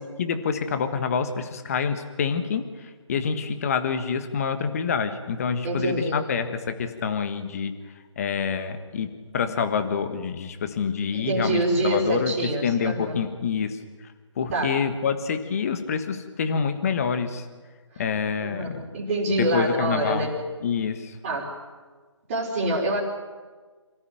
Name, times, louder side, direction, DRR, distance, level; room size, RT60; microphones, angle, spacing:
voice 1, 0.0-7.7 8.2-13.8 14.4-17.4 18.0-18.8 19.4-20.3 20.6-21.2, left 6 dB, 30° left, 9 dB, 1.5 m, -27 dB
voice 2, 5.6-6.2 11.1-13.2 14.5-14.8 17.9-18.0 18.4-20.4 21.2-21.6 22.3-23.0, right 1 dB, 25° right, -4 dB, 4.4 m, -26 dB
27.5 x 14.5 x 9.1 m, 1.4 s
figure-of-eight pair, 160°, 16 cm